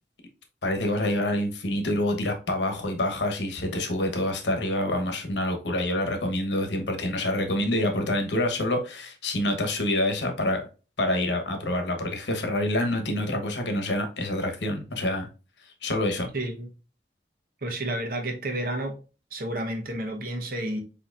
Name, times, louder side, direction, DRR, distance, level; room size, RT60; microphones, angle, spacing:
voice 1, 0.6-10.6 11.0-15.3 15.8-16.3, left 1 dB, 75° left, 1.1 m, -27 dB
voice 2, 16.3-16.7 17.6-19.0 19.3-20.8, right 1 dB, 50° right, 1.0 m, -30 dB
6.7 x 2.9 x 2.5 m
head